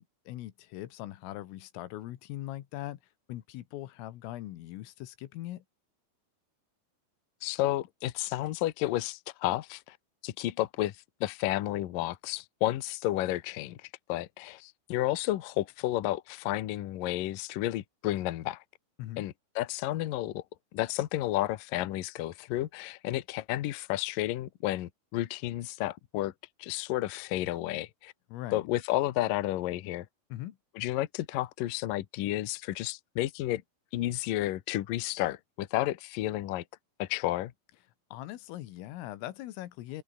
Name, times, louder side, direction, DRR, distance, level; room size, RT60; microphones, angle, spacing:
voice 1, 0.0-3.0 3.3-5.6 19.0-19.3 28.3-28.7 30.3-30.6 38.1-40.0, left 15 dB, 90° left, 4.1 m, -41 dB
voice 2, 7.4-10.0 10.2-10.9 11.2-18.6 19.2-20.4 20.7-26.3 26.6-28.1 28.5-30.1 30.8-33.6 33.9-36.6 37.0-37.5, left 15 dB, 75° left, 2.1 m, -31 dB
omnidirectional pair, 5.7 m